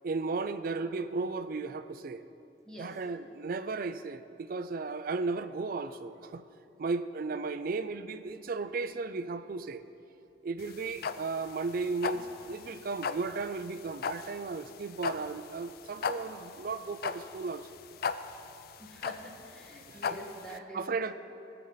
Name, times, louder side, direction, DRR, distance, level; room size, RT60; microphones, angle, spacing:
voice 1, 0.0-2.2 2.8-6.4 6.8-9.8 10.4-17.7 19.9-20.0 20.7-21.1, right 4 dB, 55° right, 11 dB, 0.4 m, -35 dB
sound 1, 10.6-20.6, left 6 dB, 55° left, 0.4 m, -37 dB
voice 2, 18.8-21.1, equal, 5° left, -3 dB, 1.3 m, -46 dB
17.5 x 6.9 x 4.0 m, 2.7 s
head